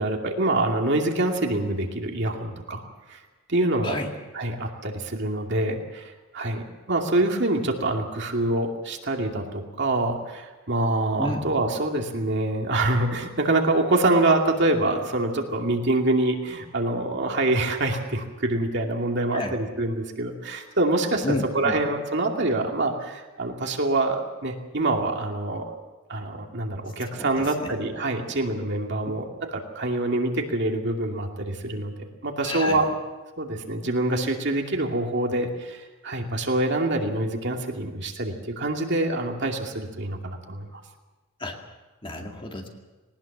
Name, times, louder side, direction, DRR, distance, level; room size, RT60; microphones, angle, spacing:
voice 1, 0.0-2.8 3.1-3.2 3.5-4.0 4.3-25.7 26.1-29.3 29.5-31.9 32.2-32.9 33.4-40.8, right 2 dB, 55° right, 2 dB, 2.5 m, -25 dB
voice 2, 3.8-4.1 11.2-11.5 19.3-19.6 21.2-21.7 27.1-27.8 32.4-32.9 41.4-41.6 42.0-42.7, left 1 dB, 25° left, 2 dB, 2.2 m, -31 dB
19.5 x 19.0 x 7.3 m, 1.2 s
head